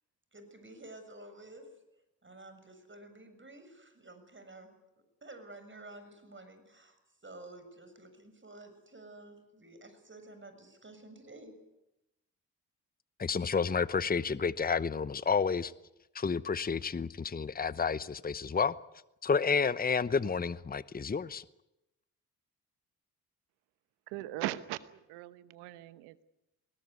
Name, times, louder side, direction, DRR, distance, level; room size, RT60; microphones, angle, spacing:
voice 1, 0.3-1.7 2.2-4.7 5.2-7.0 7.2-11.5, right 2 dB, 30° right, 7.1 m, -51 dB
voice 2, 13.2-15.7 16.1-18.8 19.2-21.4, left 5 dB, 25° left, 0.9 m, -30 dB
voice 3, 24.1-26.2, right 16 dB, 85° right, 1.1 m, -39 dB
21.5 x 19.0 x 9.6 m
hypercardioid pair, 45°, 39 cm